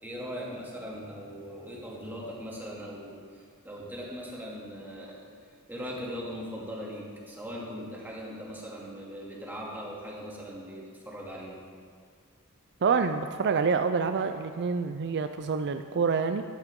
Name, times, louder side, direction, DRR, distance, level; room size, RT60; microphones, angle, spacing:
voice 1, 0.0-5.2 5.7-11.6, equal, 10° right, -5 dB, 2.6 m, -40 dB
voice 2, 12.8-16.4, right 5 dB, 50° right, 8 dB, 0.4 m, -27 dB
14.0 x 12.5 x 3.7 m, 2.1 s
head